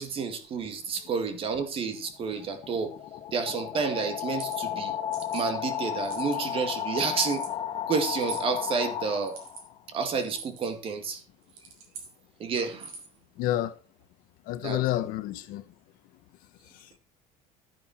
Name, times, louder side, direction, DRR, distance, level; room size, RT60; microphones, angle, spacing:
voice 1, 0.0-2.9 3.3-5.0 5.3-7.5 7.9-9.4 9.9-11.2 12.4-12.9 14.6-14.8, right 5 dB, 35° right, 2.2 m, -30 dB
sound 1, 2.0-9.8, left 10 dB, 35° left, 1.3 m, -34 dB
sound 2, 4.4-4.6 5.1-5.5 6.0-6.5 7.2-7.5 8.2-8.5 9.2-9.6 10.2-10.7 11.4-12.1 12.7-13.2, right 6 dB, 65° right, 5.8 m, -44 dB
voice 2, 13.4-13.7 14.5-15.6, left 14 dB, 65° left, 1.2 m, -29 dB
12.5 x 9.9 x 4.4 m
cardioid pair, 160°, 16 cm